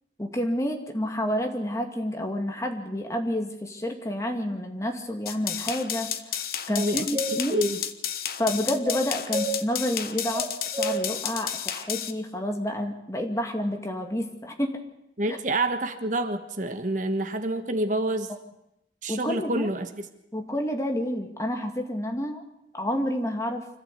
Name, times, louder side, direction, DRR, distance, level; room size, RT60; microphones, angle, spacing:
voice 1, 0.2-7.7 8.4-14.8 15.3-15.4 19.1-19.7 20.3-22.4 22.7-23.7, equal, 15° left, 3 dB, 2.3 m, -29 dB
sound 1, 5.3-12.1, left 9 dB, 55° left, 1.2 m, -32 dB
sound 2, 6.7-7.3 8.8-9.5 10.3-11.0, right 1 dB, 20° right, 3.8 m, -30 dB
voice 2, 6.7-7.1 7.5-7.8 15.2-18.3 19.0-20.0, right 1 dB, 45° right, 8 dB, 1.4 m, -28 dB
25.5 x 14.5 x 8.4 m, 0.81 s
head